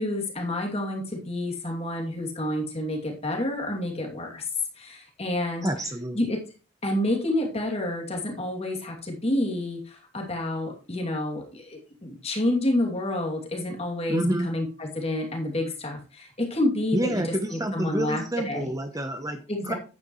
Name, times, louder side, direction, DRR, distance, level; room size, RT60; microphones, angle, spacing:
voice 1, 0.0-4.5 4.8-5.7 6.1-6.4 6.8-18.7 19.5-19.7, left 1 dB, 30° left, 1 dB, 2.7 m, -29 dB
voice 2, 5.6-6.2 14.1-14.5 16.9-19.7, right 1 dB, 15° right, 6 dB, 0.8 m, -28 dB
10.5 x 9.3 x 3.1 m, 0.33 s
head